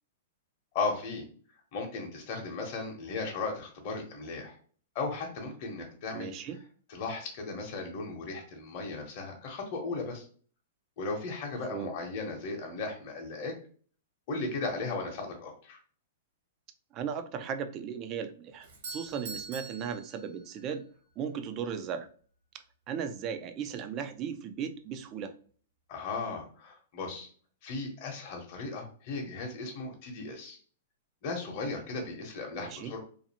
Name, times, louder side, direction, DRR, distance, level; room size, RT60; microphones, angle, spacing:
voice 1, 0.7-1.2 1.7-4.5 4.9-6.3 6.9-10.2 11.0-13.6 14.3-15.8 25.9-27.3 27.6-30.6 31.2-33.0, left 3 dB, 45° left, 1 dB, 0.8 m, -36 dB
voice 2, 6.1-6.6 11.7-11.9 16.9-20.8 21.2-22.1 22.9-25.3 32.6-32.9, right 7 dB, 30° right, 9 dB, 0.4 m, -36 dB
Doorbell, 18.6-20.8, right 4 dB, 60° right, 1.2 m, -44 dB
2.5 x 2.4 x 2.8 m, 0.44 s
hypercardioid pair, 140°, 0 cm